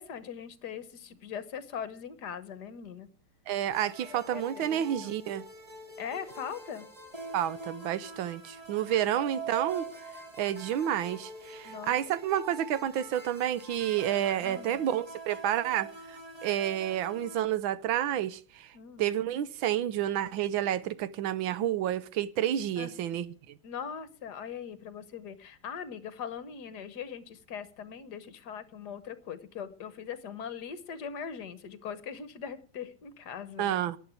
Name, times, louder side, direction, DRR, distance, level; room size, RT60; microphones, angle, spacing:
voice 1, 0.0-3.1 4.0-5.1 6.0-6.9 9.0-9.1 11.6-12.0 14.4-14.8 18.7-19.1 22.8-23.0 23.6-33.8, left 7 dB, 55° left, 1.6 m, -41 dB
voice 2, 3.5-5.4 7.3-9.8 10.4-18.7 19.0-23.6 33.6-34.0, right 11 dB, 70° right, 1.5 m, -30 dB
sound 1, 3.7-17.4, right 4 dB, 20° right, 2.1 m, -44 dB
11.0 x 10.0 x 9.5 m
omnidirectional pair, 2.4 m